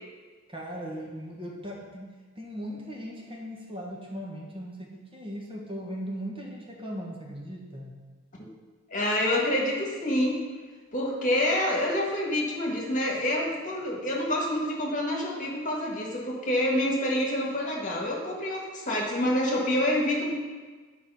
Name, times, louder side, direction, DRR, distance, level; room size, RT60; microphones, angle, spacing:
voice 1, 0.5-8.0, equal, 25° right, -3 dB, 1.5 m, -38 dB
voice 2, 8.9-10.4 10.9-20.3, left 1 dB, 40° left, -2 dB, 1.7 m, -27 dB
11.0 x 5.0 x 5.6 m, 1.4 s
head